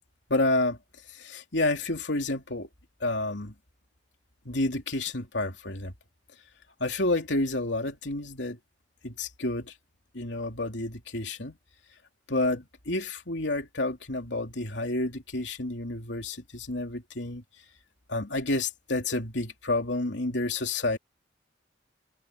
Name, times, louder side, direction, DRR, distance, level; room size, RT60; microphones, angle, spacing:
voice 1, 0.3-0.8 1.1-2.7 3.0-3.5 4.4-5.9 6.8-8.6 9.0-9.7 10.1-11.6 12.3-17.4 18.1-21.0, left 2 dB, 80° left, 3.0 m, -29 dB
head